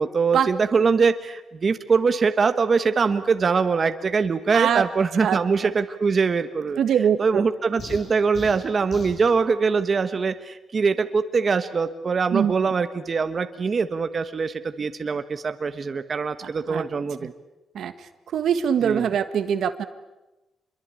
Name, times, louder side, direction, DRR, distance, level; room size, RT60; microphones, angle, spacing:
voice 1, 0.0-6.8 7.2-17.3 18.8-19.1, right 5 dB, 40° right, 9 dB, 1.2 m, -23 dB
voice 2, 4.5-4.9 5.2-5.7 6.8-7.4 12.3-12.5 16.4-16.8 17.2-17.3 17.7-19.8, right 8 dB, 75° right, 10 dB, 1.5 m, -23 dB
sound 1, 7.8-9.2, left 3 dB, 55° left, 7.5 m, -38 dB
26.5 x 22.5 x 8.6 m, 1.0 s
cardioid pair, 100°, 0 cm